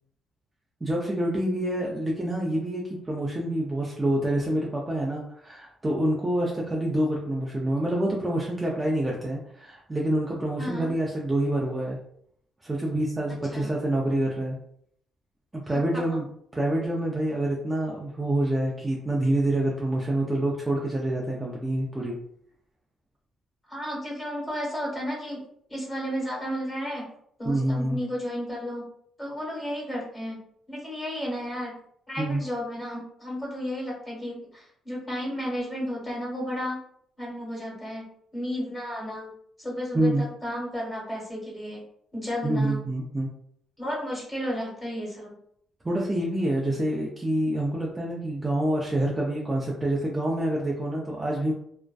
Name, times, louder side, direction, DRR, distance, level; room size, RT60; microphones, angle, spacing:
voice 1, 0.8-12.0 12.6-14.6 15.5-16.2 16.5-22.2 27.4-28.0 32.2-32.4 39.9-40.3 42.4-43.3 45.8-51.5, right 1 dB, 20° right, -3 dB, 0.4 m, -27 dB
voice 2, 10.6-10.9 13.3-13.7 15.7-16.0 23.7-25.4 25.7-27.1 27.4-28.9 29.2-30.4 30.7-31.8 32.1-36.8 37.2-38.0 38.3-39.3 39.6-41.8 42.1-42.8 43.8-45.4, equal, 15° left, -4 dB, 1.3 m, -33 dB
2.5 x 2.2 x 2.3 m, 0.68 s
cardioid pair, 90°, 0 cm